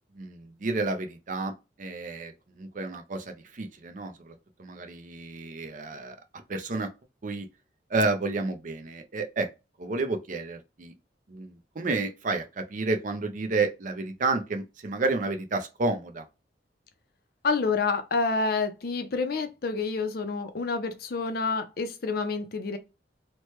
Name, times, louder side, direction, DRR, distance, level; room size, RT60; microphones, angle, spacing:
voice 1, 0.2-1.5 1.8-6.2 6.5-6.9 7.2-7.5 7.9-9.5 9.8-10.9 11.3-16.3, right 3 dB, 45° right, 0.5 m, -30 dB
voice 2, 17.4-22.8, left 4 dB, 55° left, 0.5 m, -28 dB
3.0 x 2.2 x 2.9 m
head